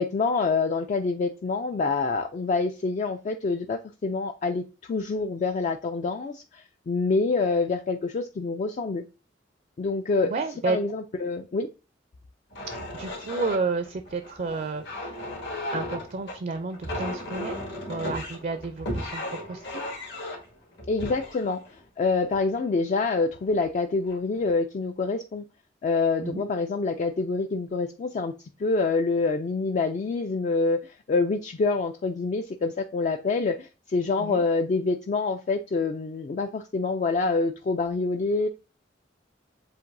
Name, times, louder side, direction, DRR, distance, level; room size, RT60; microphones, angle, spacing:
voice 1, 0.0-9.0 9.8-10.3 10.7-11.7 20.9-21.6 22.0-25.4 25.8-38.5, left 3 dB, 40° left, 6 dB, 0.3 m, -26 dB
voice 2, 10.3-10.8 12.9-15.2 15.7-19.8 26.2-26.4 34.2-34.4, right 4 dB, 45° right, 9 dB, 0.4 m, -31 dB
sound 1, 12.5-22.8 23.4-23.7 24.1-24.6, left 1 dB, 70° left, 1.8 m, -35 dB
7.5 x 2.6 x 2.6 m, 0.32 s
head